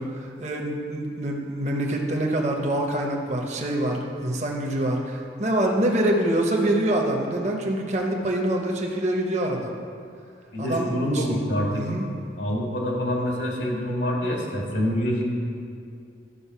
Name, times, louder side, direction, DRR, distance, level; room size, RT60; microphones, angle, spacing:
voice 1, 0.0-9.7 10.6-11.4 11.7-12.1, right 1 dB, 40° right, 0 dB, 1.0 m, -25 dB
voice 2, 10.5-11.8 12.4-15.2, equal, 75° left, -2 dB, 1.8 m, -26 dB
12.5 x 5.4 x 5.6 m, 2.3 s
head